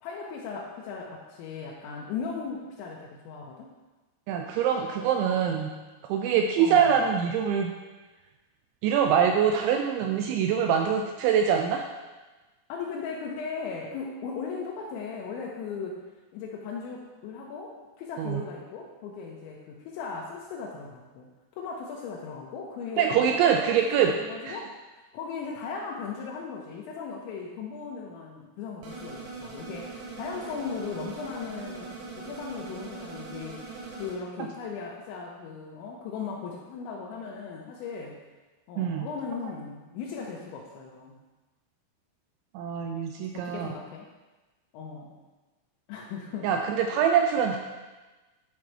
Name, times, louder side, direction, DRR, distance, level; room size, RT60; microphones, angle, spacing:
voice 1, 0.0-3.7 6.6-7.1 10.2-10.3 12.7-16.0 16.3-21.3 21.6-23.6 23.8-24.7 25.1-38.2 38.7-41.2 43.3-44.1 44.7-45.1 45.9-46.5 46.9-47.0, left 5 dB, 85° left, -2 dB, 2.9 m, -37 dB
voice 2, 4.3-5.7 6.1-7.7 8.8-11.9 18.2-18.4 23.0-24.1 24.4-24.6 38.8-39.1 42.6-43.7 46.4-47.6, right 8 dB, 85° right, 3 dB, 2.6 m, -24 dB
sound 1, 28.8-34.1, right 4 dB, 70° right, 3.7 m, -41 dB
10.5 x 4.4 x 4.7 m, 1.2 s
omnidirectional pair, 5.8 m